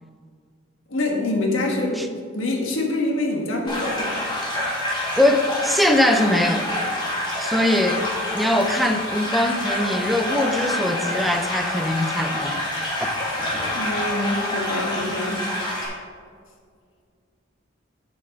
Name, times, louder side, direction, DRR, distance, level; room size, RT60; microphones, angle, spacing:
voice 1, 0.9-4.1 13.7-15.4, left 2 dB, 85° left, 1 dB, 1.5 m, -25 dB
sound 1, 3.7-15.9, left 1 dB, 25° left, 2.1 m, -27 dB
voice 2, 5.2-6.7 7.4-8.0 8.3-12.6 13.0-13.1, left 1 dB, ahead, 5 dB, 0.5 m, -21 dB
7.7 x 6.9 x 5.1 m, 2.1 s
head